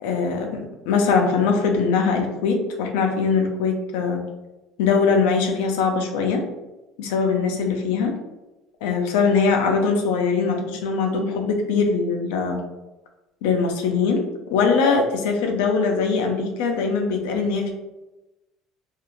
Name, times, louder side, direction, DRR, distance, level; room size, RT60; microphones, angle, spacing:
voice 1, 0.0-4.2 4.8-6.4 7.0-8.1 8.8-12.6 13.4-14.2 14.5-17.7, left 5 dB, 85° left, 3 dB, 0.4 m, -21 dB
2.4 x 2.4 x 3.0 m, 1.0 s
supercardioid pair, 105°, 0 cm